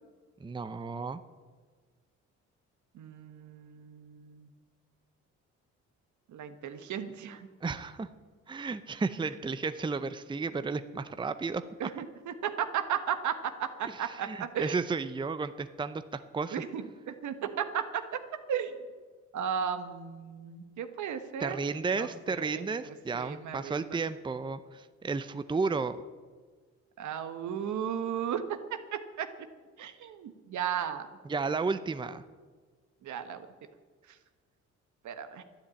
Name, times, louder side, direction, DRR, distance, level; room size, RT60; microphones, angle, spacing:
voice 1, 0.4-1.2 7.6-8.1 8.5-11.9 13.8-16.6 21.4-26.0 31.3-32.2, right 4 dB, 15° right, 11 dB, 0.6 m, -33 dB
voice 2, 2.9-4.5 6.3-7.5 11.8-14.8 16.5-18.2 18.5-19.0 19.3-21.6 21.9-23.8 27.0-29.5 29.8-31.1 33.0-33.5 34.1-34.2 35.0-35.4, right 8 dB, 70° right, 9 dB, 1.3 m, -35 dB
12.0 x 10.0 x 8.4 m, 1.5 s
cardioid pair, 90°, 30 cm